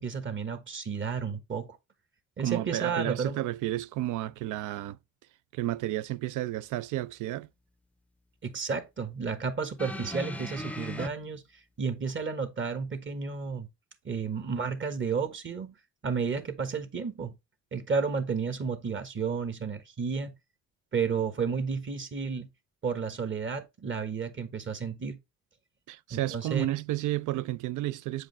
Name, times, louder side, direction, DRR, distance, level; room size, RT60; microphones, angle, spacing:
voice 1, 0.0-1.8 2.4-3.4 8.4-11.4 11.8-13.7 14.0-15.7 16.0-17.3 17.7-20.3 20.9-22.5 22.8-25.2 26.1-26.7, right 5 dB, 40° right, 1.3 m, -32 dB
voice 2, 2.4-5.0 5.5-7.5 25.9-28.3, right 15 dB, 80° right, 0.5 m, -31 dB
sound 1, 9.8-11.1 12.1-12.2, left 1 dB, 5° left, 0.5 m, -37 dB
7.5 x 5.0 x 3.1 m
cardioid pair, 90°, 30 cm